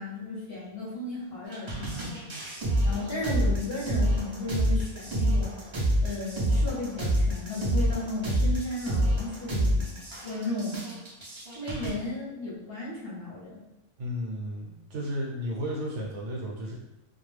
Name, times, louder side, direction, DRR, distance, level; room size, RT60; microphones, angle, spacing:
voice 1, 0.0-2.1 2.8-5.5 6.0-10.8 11.5-13.6, left 2 dB, 50° left, -7 dB, 0.9 m, -34 dB
sound 1, 1.5-11.9, equal, 45° right, 0.4 m, -27 dB
voice 2, 14.0-16.7, equal, 65° right, -4 dB, 1.0 m, -33 dB
2.4 x 2.1 x 3.1 m, 0.97 s
omnidirectional pair, 1.4 m